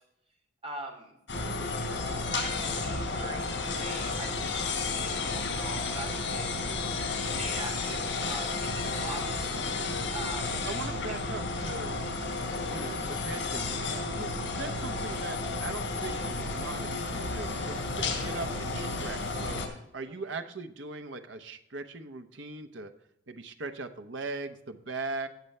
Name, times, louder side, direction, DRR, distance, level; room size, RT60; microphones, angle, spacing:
voice 1, 0.6-1.2 2.3-7.0 7.2-10.7 11.0-11.1 20.1-20.4, right 2 dB, 30° right, 1 dB, 2.9 m, -42 dB
sound 1, 1.3-19.7, left 3 dB, 80° left, 3.5 m, -32 dB
voice 2, 10.5-12.0 12.7-19.6 19.9-22.9 23.3-25.3, right 3 dB, 80° right, 7 dB, 1.0 m, -40 dB
17.5 x 6.8 x 3.3 m, 0.79 s
head